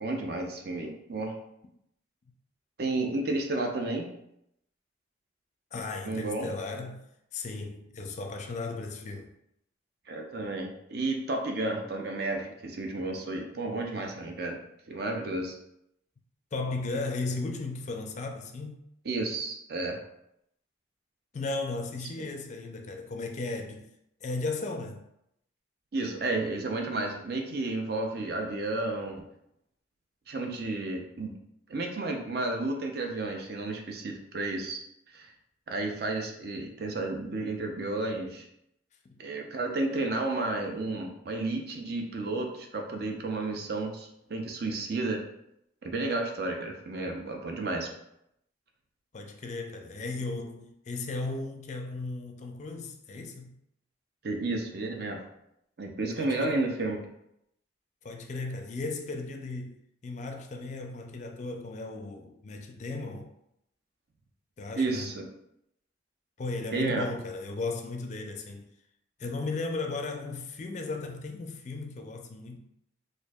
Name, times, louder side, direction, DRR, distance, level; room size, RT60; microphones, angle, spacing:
voice 1, 0.0-1.3 2.8-4.1 6.1-6.5 10.1-14.6 14.9-15.6 19.0-20.0 25.9-29.2 30.3-31.3 31.7-34.8 35.1-35.3 35.7-38.5 39.2-45.2 45.8-47.9 54.2-55.2 55.8-57.0 64.7-65.3 66.7-67.1, right 2 dB, 55° right, 0.6 m, -32 dB
voice 2, 5.7-7.0 7.3-9.3 16.5-18.8 21.3-23.9 24.2-25.0 39.1-39.2 49.1-53.6 56.2-56.6 58.0-59.8 60.0-63.3 64.6-65.2 66.4-68.7 69.2-72.6, left 3 dB, 40° left, 0.4 m, -36 dB
4.4 x 2.6 x 2.3 m
head